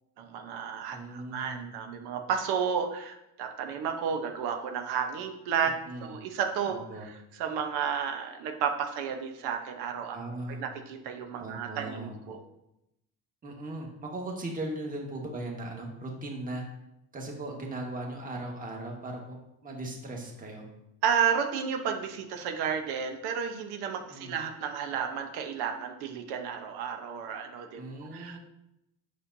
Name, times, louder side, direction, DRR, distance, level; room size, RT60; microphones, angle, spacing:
voice 1, 0.2-5.7 6.0-10.2 10.5-12.4 21.0-27.8 28.1-28.4, right 7 dB, 80° right, 4 dB, 1.0 m, -32 dB
voice 2, 0.9-1.7 5.9-6.1 6.7-7.1 10.1-10.6 11.4-12.2 13.4-16.6 17.1-20.6 24.1-24.4 27.8-28.4, right 2 dB, 20° right, 0 dB, 1.6 m, -38 dB
8.7 x 6.3 x 2.7 m, 0.85 s
cardioid pair, 135°, 38 cm